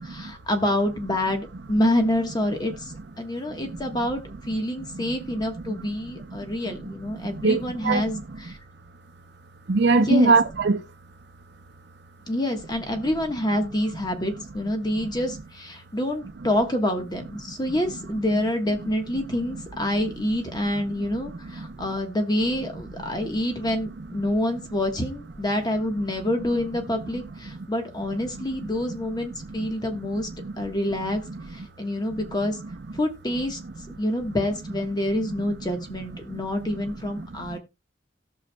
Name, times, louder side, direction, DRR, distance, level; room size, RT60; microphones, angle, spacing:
voice 1, 0.0-8.2 8.4-8.6 10.1-10.3 12.3-30.3 30.6-32.6 32.9-33.6 34.0-37.6, left 1 dB, 20° left, 1.3 m, -27 dB
voice 2, 3.5-3.8 4.8-5.1 5.6-8.5 9.7-10.9 15.0-15.1 18.3-18.4 20.0-20.1 20.6-20.7 21.3-22.0 23.1-23.3 28.4-28.7 29.6-29.7 30.1-30.6 31.3-31.5 32.2-32.3 35.4-35.5 36.3-36.8 37.1-37.6, right 3 dB, 60° right, 0.6 m, -26 dB
18.5 x 6.2 x 2.2 m
head